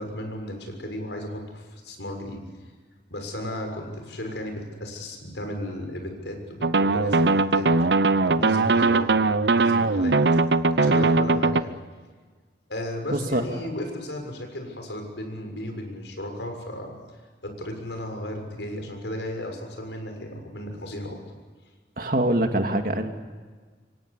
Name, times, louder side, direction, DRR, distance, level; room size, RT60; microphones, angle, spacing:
voice 1, 0.0-2.4 3.1-7.7 8.2-9.1 9.4-10.2 10.8-11.7 12.7-17.0 17.4-21.2, left 1 dB, 85° left, 4 dB, 6.7 m, -34 dB
sound 1, 6.6-11.6, right 3 dB, 70° right, 0.8 m, -20 dB
voice 2, 13.1-13.4 22.0-23.2, right 1 dB, 50° right, 5 dB, 2.4 m, -24 dB
26.5 x 24.0 x 8.5 m, 1.4 s
head